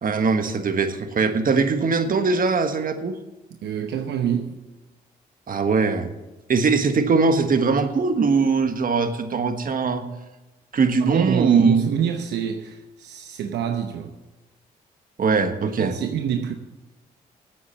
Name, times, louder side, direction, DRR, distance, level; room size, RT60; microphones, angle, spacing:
voice 1, 0.0-3.2 5.5-6.1 6.5-10.0 10.7-11.9 15.2-15.9, right 4 dB, 55° right, 1.5 m, -21 dB
voice 2, 3.6-4.6 11.0-14.1 15.8-16.5, right 8 dB, 80° right, 0.9 m, -26 dB
8.6 x 8.4 x 9.4 m
supercardioid pair, 55°, 17 cm